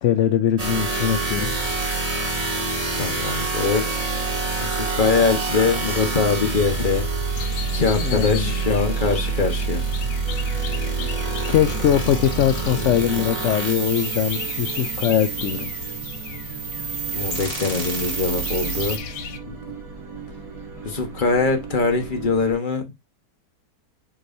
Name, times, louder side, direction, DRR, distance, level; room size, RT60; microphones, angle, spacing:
voice 1, 0.0-1.5 8.0-8.5 11.5-15.7, left 10 dB, 65° left, 0.7 m, -21 dB
sound 1, 0.6-19.0, right 4 dB, 20° right, 2.0 m, -27 dB
voice 2, 2.9-4.1 4.6-7.1 7.7-9.8 17.1-19.0 19.5-19.6 20.8-23.1, left 4 dB, 30° left, 1.3 m, -23 dB
sound 2, 7.3-19.4, left 7 dB, 85° left, 1.6 m, -36 dB
sound 3, 10.2-22.5, right 4 dB, 55° right, 2.8 m, -38 dB
7.6 x 4.8 x 2.6 m
omnidirectional pair, 1.8 m